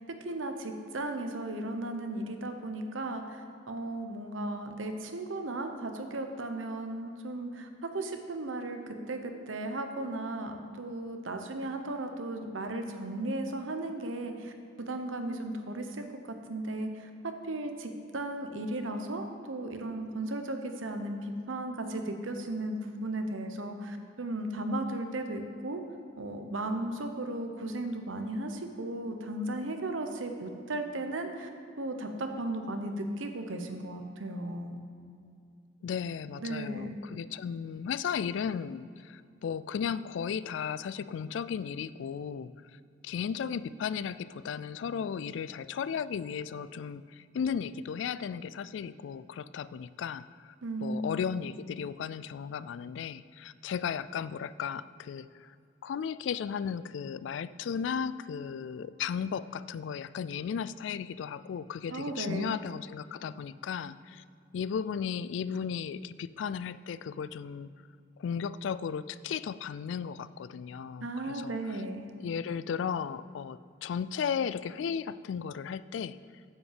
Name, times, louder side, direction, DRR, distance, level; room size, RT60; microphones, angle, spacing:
voice 1, 0.0-14.5 14.8-16.0 16.5-25.8 26.2-31.5 31.8-34.8 36.4-37.0 50.6-51.1 61.9-62.6 71.0-72.1, right 1 dB, 85° right, 6 dB, 1.0 m, -36 dB
voice 2, 35.8-42.5 43.0-50.5 50.8-55.5 55.8-64.2 64.5-67.7 68.2-71.8 72.2-76.2, left 7 dB, 70° left, 16 dB, 0.3 m, -35 dB
9.5 x 5.7 x 7.5 m, 2.4 s
head